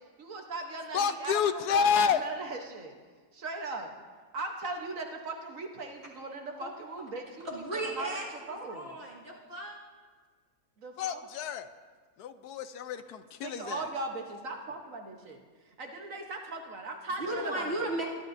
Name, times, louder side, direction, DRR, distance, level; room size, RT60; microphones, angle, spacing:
voice 1, 0.2-2.9 3.3-3.9 4.3-7.5 7.7-9.0 10.8-11.3 13.4-15.4 15.8-17.9, right 3 dB, 60° right, 3 dB, 1.3 m, -38 dB
voice 2, 0.9-2.2 11.0-11.7 12.2-13.9, left 7 dB, 80° left, 11 dB, 1.1 m, -29 dB
voice 3, 7.4-9.8 17.3-18.1, right 1 dB, 40° right, -4 dB, 2.3 m, -35 dB
22.0 x 12.0 x 2.6 m, 1.5 s
omnidirectional pair, 1.7 m